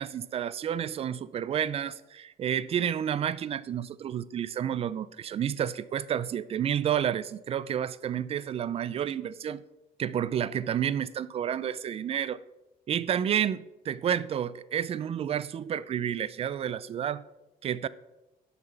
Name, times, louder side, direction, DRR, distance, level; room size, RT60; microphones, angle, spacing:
voice 1, 0.0-9.6 10.0-12.4 12.9-17.2 17.6-17.9, right 9 dB, 35° right, 0.4 m, -30 dB
7.6 x 5.9 x 5.7 m
cardioid pair, 110°, 17 cm